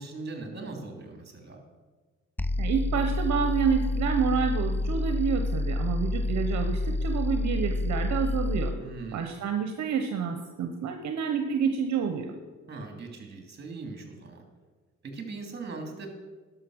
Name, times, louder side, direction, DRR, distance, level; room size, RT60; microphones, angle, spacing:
voice 1, 0.0-1.6 8.8-9.3 12.7-14.4 15.0-16.1, right 3 dB, 35° right, 3 dB, 2.8 m, -40 dB
sound 1, 2.4-8.8, left 2 dB, 5° left, 0.3 m, -28 dB
voice 2, 2.6-8.7 9.1-12.3, right 6 dB, 65° right, 6 dB, 1.0 m, -28 dB
11.5 x 6.4 x 6.3 m, 1.3 s
cardioid pair, 90°, 30 cm